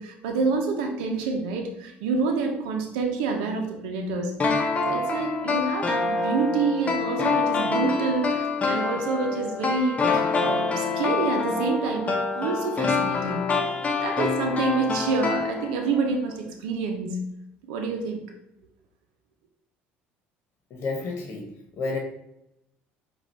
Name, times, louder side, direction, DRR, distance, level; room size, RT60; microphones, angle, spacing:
voice 1, 0.0-4.3 4.9-13.5 14.0-17.2 17.6-18.2, right 4 dB, 85° right, 3 dB, 0.7 m, -27 dB
sound 1, 4.4-16.0 16.3-16.4, left 4 dB, 30° left, 0.9 m, -26 dB
voice 2, 20.7-22.0, left 3 dB, 50° left, 1 dB, 1.1 m, -31 dB
5.0 x 2.5 x 4.3 m, 0.82 s
supercardioid pair, 80°, 5 cm